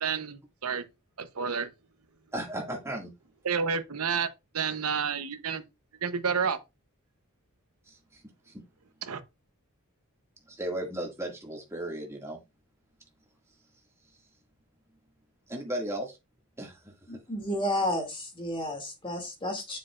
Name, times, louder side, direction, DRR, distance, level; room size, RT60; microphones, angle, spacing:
voice 1, 0.0-0.8 1.2-1.7 3.4-4.3 4.5-5.6 6.0-6.6 9.0-9.2, right 6 dB, 80° right, 0.8 m, -30 dB
voice 2, 2.3-3.1 7.9-8.2 8.5-8.6 10.5-12.4 15.5-16.2 16.6-16.9, right 1 dB, 15° right, 2.0 m, -35 dB
voice 3, 17.1-19.8, left 1 dB, 25° left, 2.3 m, -31 dB
7.5 x 6.7 x 2.4 m
head